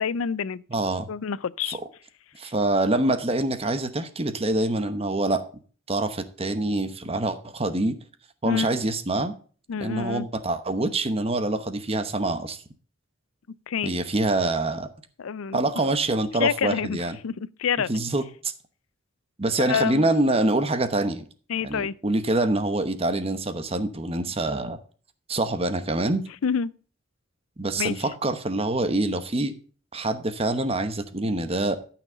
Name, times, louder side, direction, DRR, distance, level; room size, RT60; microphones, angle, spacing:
voice 1, 0.0-0.6 1.1-1.8 8.4-8.7 9.7-10.3 13.7-13.9 15.2-15.6 16.4-17.0 17.2-17.9 19.7-20.1 21.5-21.9 26.4-26.7 27.8-27.9, left 7 dB, 85° left, 0.4 m, -27 dB
voice 2, 0.7-1.1 1.7-1.8 2.3-5.4 5.9-8.0 8.4-9.3 9.8-12.6 13.8-14.9 15.5-17.2 17.9-18.5 19.4-21.2 21.6-24.8 25.3-26.3 27.6-29.5 29.9-31.8, right 2 dB, 30° right, 0.9 m, -25 dB
13.0 x 5.9 x 3.9 m
head